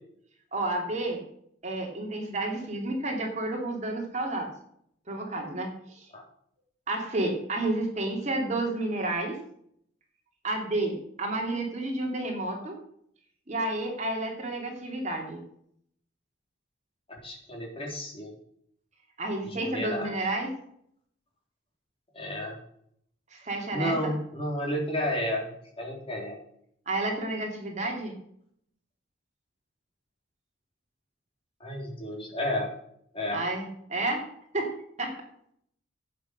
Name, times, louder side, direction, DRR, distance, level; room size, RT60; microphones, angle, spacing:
voice 1, 0.5-1.2 1.6-4.5 5.1-6.1 6.9-9.4 10.4-12.8 13.5-15.4 19.2-20.5 23.3-24.1 26.9-28.1 33.3-34.3 34.5-35.2, right 2 dB, 35° right, 1 dB, 2.7 m, -31 dB
voice 2, 17.1-18.3 19.4-20.2 22.1-22.6 23.7-26.4 31.6-32.7 33.1-33.4, equal, 30° left, -1 dB, 3.7 m, -32 dB
11.5 x 8.5 x 6.5 m, 0.69 s
head